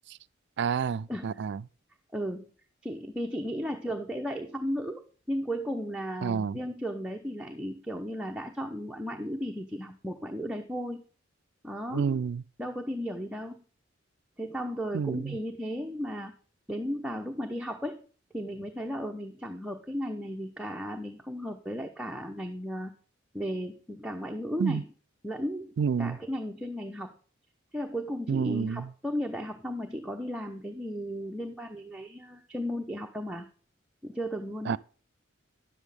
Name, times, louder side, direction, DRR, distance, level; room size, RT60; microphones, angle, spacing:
voice 1, 0.6-1.6 6.2-6.6 11.9-12.4 14.9-15.4 24.6-24.8 25.8-26.2 28.3-28.9 34.7-34.8, right 6 dB, 60° right, 0.3 m, -29 dB
voice 2, 1.1-1.4 2.1-2.5 2.8-11.0 11.6-12.2 12.6-13.6 14.4-16.3 16.7-18.0 18.3-22.9 23.3-24.8 25.2-27.1 27.7-33.5 34.0-34.8, equal, 5° right, 0.8 m, -35 dB
10.5 x 8.0 x 3.4 m
head